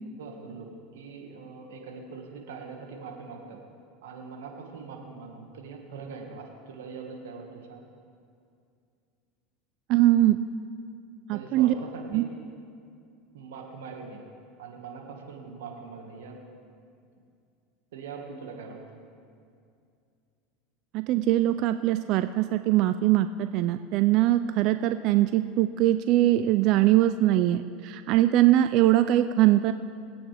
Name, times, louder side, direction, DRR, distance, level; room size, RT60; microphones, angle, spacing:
voice 1, 0.2-3.6 4.0-7.8 11.3-12.3 13.3-14.2 14.6-16.4 17.9-19.0, right 5 dB, 85° right, 1 dB, 1.8 m, -42 dB
voice 2, 9.9-10.4 11.3-11.7 12.1-12.2 20.9-29.7, right 14 dB, 55° right, 10 dB, 0.4 m, -22 dB
20.5 x 8.7 x 3.5 m, 2.4 s
supercardioid pair, 110°, 0 cm